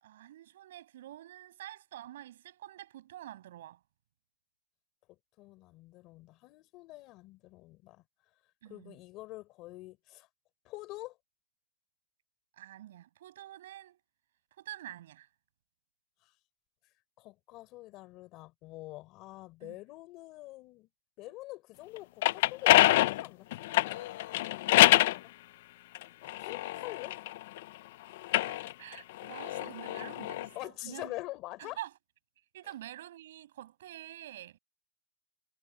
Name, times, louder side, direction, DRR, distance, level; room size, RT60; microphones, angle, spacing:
voice 1, 0.0-3.8 8.6-9.0 12.6-14.0 14.6-15.3 19.6-19.8 26.3-26.5 28.3-31.1 31.6-31.9 32.5-34.6, right 13 dB, 65° right, 7.6 m, -47 dB
voice 2, 5.1-8.0 8.7-10.3 10.6-11.2 16.2-16.3 17.2-20.9 21.2-24.1 25.0-25.3 26.4-27.2 30.5-31.8, left 19 dB, 30° left, 3.8 m, -46 dB
sound 1, 22.0-25.2 25.9-27.6 28.2-30.5, left 16 dB, 50° left, 0.4 m, -26 dB
supercardioid pair, 175°, 0 cm